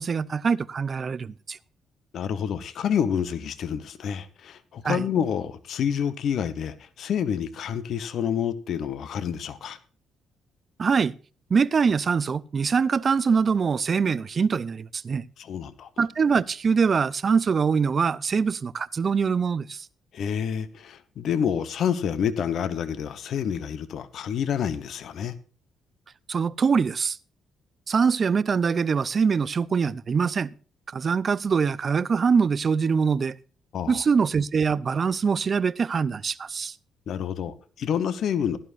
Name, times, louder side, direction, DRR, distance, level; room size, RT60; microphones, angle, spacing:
voice 1, 0.0-1.6 4.8-5.1 10.8-11.1 11.5-15.3 16.0-19.9 26.3-27.2 27.9-30.5 30.9-33.4 33.9-36.7, right 5 dB, 45° right, 0.6 m, -23 dB
voice 2, 2.1-9.8 15.4-15.9 20.1-25.3 33.7-34.0 37.1-38.6, left 8 dB, 65° left, 1.0 m, -28 dB
16.5 x 11.5 x 2.6 m
cardioid pair, 90°, 0 cm